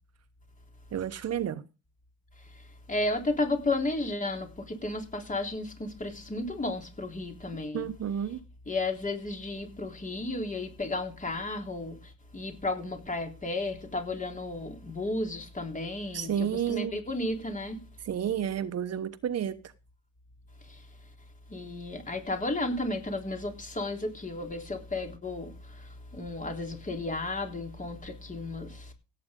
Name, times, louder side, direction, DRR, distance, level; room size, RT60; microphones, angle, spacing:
voice 1, 0.9-1.6 7.7-8.4 16.1-17.0 18.0-19.6, right 9 dB, 55° right, 1.0 m, -31 dB
voice 2, 2.9-7.9 8.7-17.8 20.7-20.8 21.5-28.9, left 2 dB, 25° left, 3.7 m, -33 dB
17.0 x 8.7 x 3.8 m
cardioid pair, 90°, 30 cm